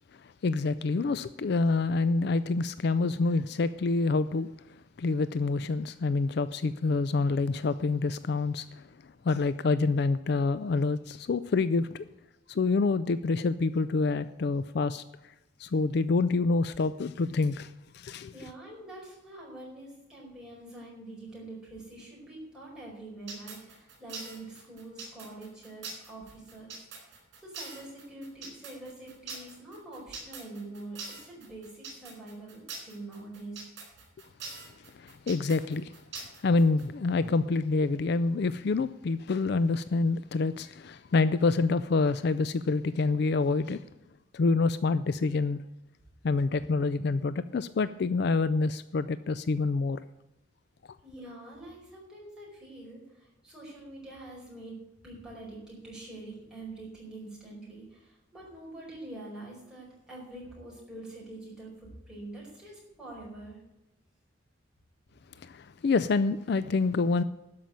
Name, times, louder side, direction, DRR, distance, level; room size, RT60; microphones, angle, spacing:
voice 1, 0.4-4.5 5.0-8.7 9.2-12.0 12.5-15.0 15.6-18.3 35.0-35.9 36.4-43.8 44.3-45.6 46.2-50.0 65.4-67.2, left 3 dB, 55° left, 0.4 m, -27 dB
voice 2, 18.3-33.6 51.0-54.8 55.0-63.6, right 2 dB, 5° right, 4.9 m, -45 dB
sound 1, 23.3-36.8, right 4 dB, 60° right, 4.4 m, -43 dB
12.5 x 5.8 x 8.9 m
head